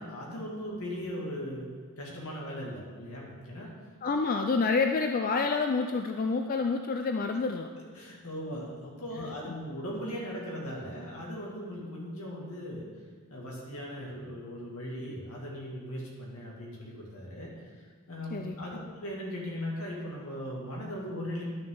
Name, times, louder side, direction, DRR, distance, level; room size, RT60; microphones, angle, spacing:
voice 1, 0.0-1.7 2.0-3.7 7.8-12.9 13.3-21.4, equal, 85° left, -3 dB, 2.3 m, -38 dB
voice 2, 4.0-7.7 9.2-9.3 18.3-18.8, left 4 dB, 40° left, 5 dB, 0.4 m, -28 dB
11.0 x 6.5 x 3.9 m, 1.5 s
head